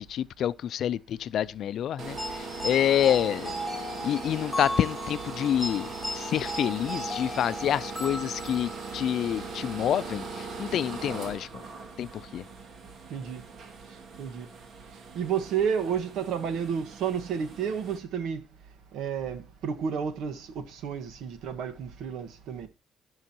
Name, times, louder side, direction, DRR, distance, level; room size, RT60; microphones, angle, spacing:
voice 1, 0.0-3.5 4.0-5.9 6.2-11.5 12.0-12.4, left 10 dB, 70° left, 0.4 m, -28 dB
sound 1, 2.0-18.0, right 4 dB, 65° right, 2.0 m, -40 dB
sound 2, 2.2-9.0, equal, 5° left, 2.3 m, -36 dB
voice 2, 13.1-13.4 13.8-14.5 14.9-18.4 18.9-22.7, right 7 dB, 85° right, 1.4 m, -31 dB
17.5 x 6.3 x 2.9 m
cardioid pair, 90°, 0 cm